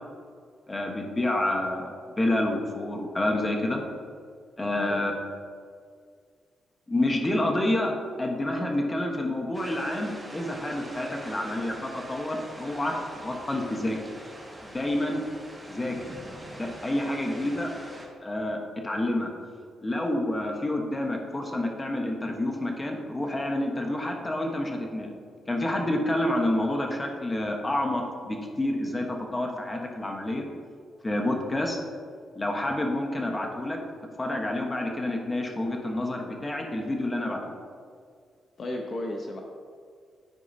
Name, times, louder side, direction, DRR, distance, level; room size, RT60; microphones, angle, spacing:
voice 1, 0.7-3.8 4.6-5.2 6.9-7.9 8.2-13.0 13.2-14.0 14.6-15.2 15.7-16.0 16.6-17.7 18.2-19.3 19.8-25.1 25.5-30.5 31.0-31.8 32.3-33.8 34.2-37.6, left 1 dB, 20° left, 1 dB, 1.2 m, -28 dB
sound 1, 9.5-18.0, right 1 dB, 10° right, 1.8 m, -43 dB
voice 2, 38.6-39.4, left 1 dB, 50° left, 1 dB, 0.8 m, -34 dB
13.0 x 4.6 x 2.8 m, 2.1 s
cardioid pair, 100°, 0 cm